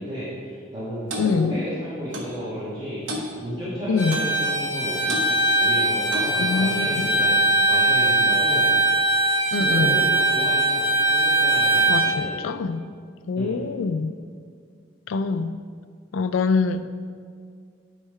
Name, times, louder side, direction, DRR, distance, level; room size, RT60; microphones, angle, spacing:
voice 1, 0.0-7.3 7.7-8.7 9.6-12.3 13.4-13.6, equal, 25° right, -12 dB, 1.4 m, -33 dB
Clock, 1.1-1.3 2.1-2.3 3.1-3.3 4.1-4.4 5.1-5.3 6.1-6.4, equal, 70° right, 0.9 m, -31 dB
voice 2, 1.2-1.6 3.9-4.2 6.4-7.1 9.5-10.0 11.9-12.8 13.3-14.1 15.1-15.5 16.1-16.9, left 4 dB, 85° left, 10 dB, 0.4 m, -24 dB
Bowed string instrument, 4.0-12.1, right 2 dB, 15° left, 1.8 m, -21 dB
9.6 x 3.3 x 4.6 m, 2.1 s
head